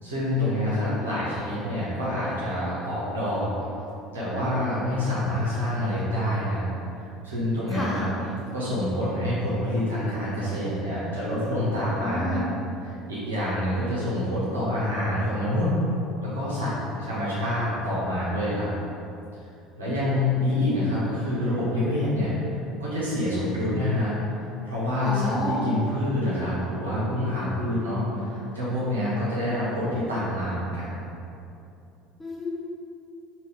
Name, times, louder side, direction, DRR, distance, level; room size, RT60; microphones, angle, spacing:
voice 1, 0.0-3.5 4.1-6.7 7.0-8.1 8.5-12.4 12.8-15.7 16.2-18.7 19.8-22.3 22.8-31.0, left 1 dB, 80° right, -9 dB, 1.4 m, -27 dB
voice 2, 7.7-8.1 12.0-12.5 25.0-25.7 32.2-32.5, left 1 dB, 15° left, -5 dB, 1.0 m, -30 dB
4.5 x 2.8 x 3.5 m, 2.7 s
figure-of-eight pair, 65°, 0 cm